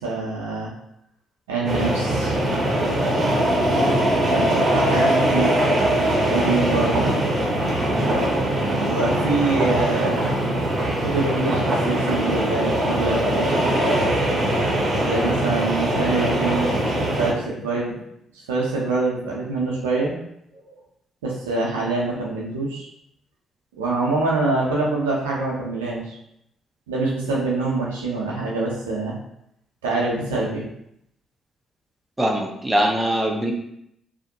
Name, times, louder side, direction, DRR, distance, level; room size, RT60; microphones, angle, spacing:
voice 1, 0.0-0.7 1.5-2.3 3.7-5.6 6.3-7.1 8.7-10.3 11.0-13.6 15.0-16.8 17.1-18.0 18.5-20.2 20.5-20.6 21.2-22.9 23.8-26.2 26.9-29.1 29.8-30.7, right 3 dB, 90° right, -4 dB, 0.5 m, -25 dB
sound 1, 1.6-17.3, right 1 dB, 50° right, 0.7 m, -21 dB
voice 2, 32.2-33.5, equal, 10° right, 1 dB, 0.6 m, -22 dB
2.5 x 2.1 x 2.7 m, 0.76 s
hypercardioid pair, 45°, 0 cm